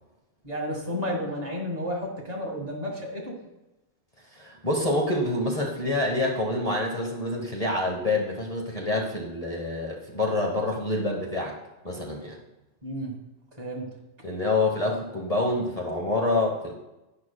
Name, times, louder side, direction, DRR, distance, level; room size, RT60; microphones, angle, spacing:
voice 1, 0.4-3.4 12.8-13.1 13.6-13.9, equal, 35° right, -1 dB, 1.8 m, -32 dB
voice 2, 4.3-11.5 11.8-12.4 14.2-16.7, left 2 dB, 35° left, -1 dB, 1.2 m, -27 dB
11.0 x 9.5 x 2.3 m, 0.98 s
omnidirectional pair, 1.2 m